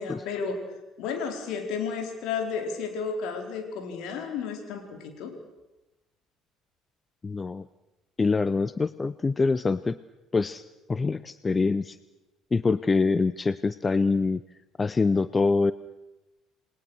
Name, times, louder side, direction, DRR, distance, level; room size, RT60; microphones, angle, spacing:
voice 1, 0.0-5.3, left 5 dB, 65° left, 4 dB, 4.3 m, -32 dB
voice 2, 7.2-7.7 8.2-10.0 10.3-10.6 10.9-12.0 12.5-14.4 14.8-15.7, left 4 dB, 25° left, 16 dB, 0.7 m, -24 dB
28.5 x 21.0 x 6.5 m, 1.0 s
hypercardioid pair, 55°, 0 cm